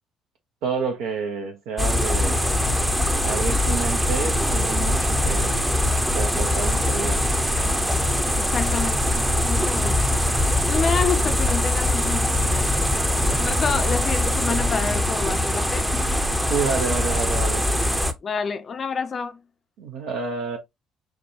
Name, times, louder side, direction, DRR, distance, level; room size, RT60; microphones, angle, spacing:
voice 1, 0.6-2.4 3.2-5.6 6.1-7.2 16.5-17.7 19.8-20.6, right 5 dB, 60° right, 0.5 m, -29 dB
sound 1, 1.8-18.1, left 1 dB, 5° right, 0.6 m, -22 dB
voice 2, 8.4-9.2 9.4-10.0 10.7-12.7 13.4-15.9 18.2-19.4, left 5 dB, 40° left, 0.4 m, -28 dB
4.7 x 2.2 x 2.7 m
figure-of-eight pair, 50°, 0 cm